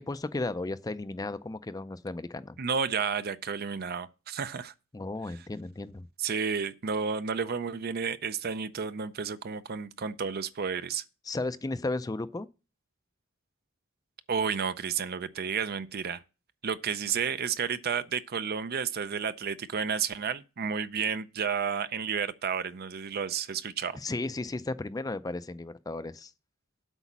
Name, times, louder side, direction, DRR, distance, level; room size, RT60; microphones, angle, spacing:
voice 1, 0.0-2.6 4.9-6.1 11.3-12.5 23.9-26.3, left 2 dB, 20° left, 0.4 m, -34 dB
voice 2, 2.6-4.7 6.2-11.0 14.3-16.2 16.6-24.0, right 6 dB, 50° right, 0.5 m, -31 dB
8.1 x 5.0 x 7.2 m
head